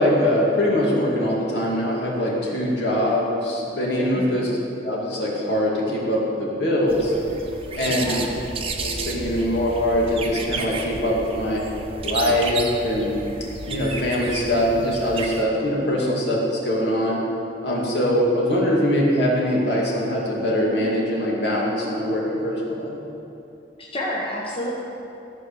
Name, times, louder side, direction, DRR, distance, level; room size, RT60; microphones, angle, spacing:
voice 1, 0.0-4.5 4.8-7.1 7.8-8.2 8.8-11.6 12.0-13.1 13.6-17.2 17.6-23.0, equal, 65° left, -4 dB, 2.3 m, -22 dB
sound 1, 6.9-15.4, right 3 dB, 30° right, 0.8 m, -32 dB
voice 2, 7.8-8.3 23.8-24.7, left 1 dB, 30° left, -4 dB, 1.1 m, -30 dB
14.5 x 4.9 x 6.8 m, 2.9 s
head